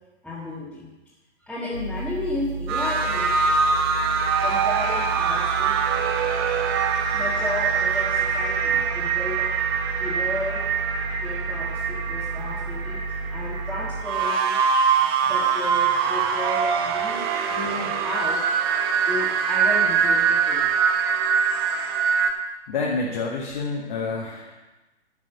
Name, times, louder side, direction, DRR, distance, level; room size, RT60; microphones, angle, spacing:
voice 1, 0.2-0.9 1.4-3.4 4.4-5.8 7.1-9.5 10.0-10.7 11.2-13.0 13.3-14.6 15.0-18.4 19.0-20.7, left 2 dB, ahead, -10 dB, 1.7 m, -33 dB
sound 1, 1.7-14.0, right 3 dB, 75° right, 2.3 m, -33 dB
sound 2, 2.7-22.3, right 6 dB, 20° right, 0.7 m, -23 dB
voice 2, 22.7-24.6, left 3 dB, 45° left, -2 dB, 1.7 m, -28 dB
11.0 x 6.1 x 6.9 m, 1.1 s
figure-of-eight pair, 130°, 34 cm